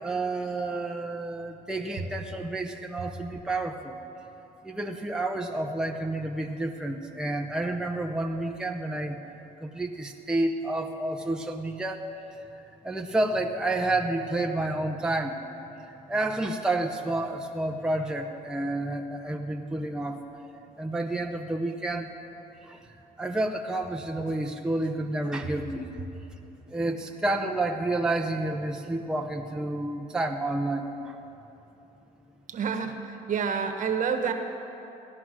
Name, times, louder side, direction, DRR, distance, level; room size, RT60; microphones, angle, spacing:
voice 1, 0.0-4.0 4.6-9.2 9.6-12.1 12.8-15.4 15.9-20.2 20.8-22.1 22.6-22.8 23.2-25.9 26.7-31.2, right 2 dB, 5° right, 2 dB, 0.7 m, -30 dB
voice 2, 32.5-34.3, right 6 dB, 50° right, 6 dB, 1.3 m, -28 dB
15.5 x 11.0 x 6.2 m, 3.0 s
cardioid pair, 110°, 17 cm